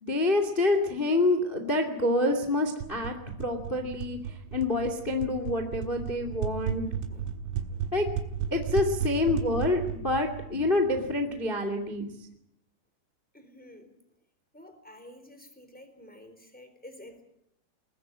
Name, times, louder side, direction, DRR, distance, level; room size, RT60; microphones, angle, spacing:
voice 1, 0.0-7.0 7.9-8.1 8.5-12.1, left 2 dB, 80° left, 6 dB, 0.4 m, -27 dB
sound 1, 2.8-11.5, right 8 dB, 80° right, 4.1 m, -35 dB
voice 2, 13.3-13.9 14.5-17.2, left 1 dB, ahead, 8 dB, 2.8 m, -50 dB
21.5 x 20.0 x 8.7 m, 0.77 s
omnidirectional pair, 5.9 m